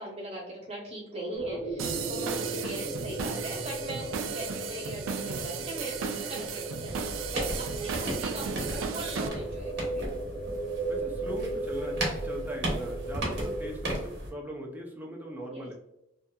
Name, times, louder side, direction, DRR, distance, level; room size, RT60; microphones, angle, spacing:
voice 1, 0.0-6.9 7.3-10.2 13.9-14.0 15.5-15.7, equal, 30° right, -7 dB, 0.8 m, -40 dB
sound 1, 1.3-13.7, right 2 dB, 65° left, 1.1 m, -37 dB
sound 2, 1.8-9.3, right 6 dB, 90° right, 0.3 m, -35 dB
sound 3, 6.9-14.3, right 1 dB, 55° right, 0.9 m, -35 dB
voice 2, 7.5-7.9 10.9-15.7, right 1 dB, 10° right, -1 dB, 0.5 m, -40 dB
2.6 x 2.4 x 2.2 m, 0.87 s
head